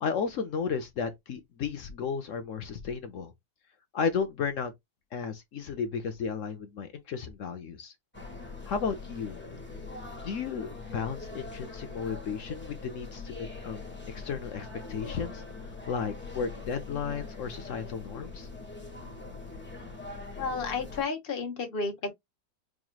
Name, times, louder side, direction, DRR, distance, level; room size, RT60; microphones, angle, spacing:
voice 1, 0.0-3.3 3.9-4.7 5.1-7.9 8.7-9.4 9.9-18.5, left 6 dB, 60° left, 0.9 m, -34 dB
sound 1, 8.1-21.0, left 3 dB, 10° left, 1.0 m, -42 dB
voice 2, 20.4-22.1, left 4 dB, 40° left, 1.3 m, -32 dB
4.9 x 3.0 x 2.3 m
omnidirectional pair, 1.7 m